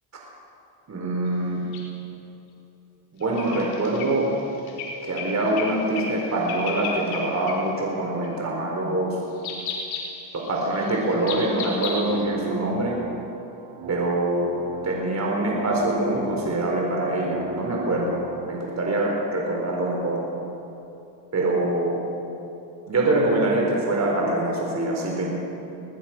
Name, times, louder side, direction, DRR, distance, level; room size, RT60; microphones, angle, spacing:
voice 1, 0.9-1.6 3.1-4.3 5.0-9.2 10.3-13.0 13.9-14.5 14.8-20.2 21.3-22.0 22.9-25.3, right 2 dB, 35° right, -1 dB, 4.6 m, -24 dB
sound 1, 1.7-1.8 3.2-5.7 6.0-6.2 6.5-7.2 7.5-7.6 8.2-8.5 9.4-12.2, left 5 dB, 85° left, 4.6 m, -34 dB
sound 2, 11.0-21.1, right 3 dB, 60° right, 6.1 m, -38 dB
22.5 x 19.0 x 6.2 m, 2.9 s
supercardioid pair, 85°, 47 cm